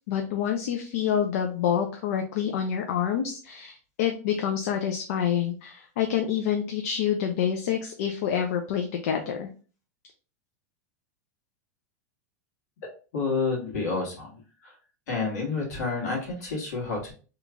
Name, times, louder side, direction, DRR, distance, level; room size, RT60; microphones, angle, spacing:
voice 1, 0.1-9.5, left 8 dB, 65° left, 4 dB, 0.5 m, -27 dB
voice 2, 13.1-14.3 14.6-14.7 15.1-17.1, left 4 dB, 90° left, -2 dB, 1.7 m, -29 dB
3.0 x 2.4 x 3.4 m, 0.38 s
supercardioid pair, 165°, 9 cm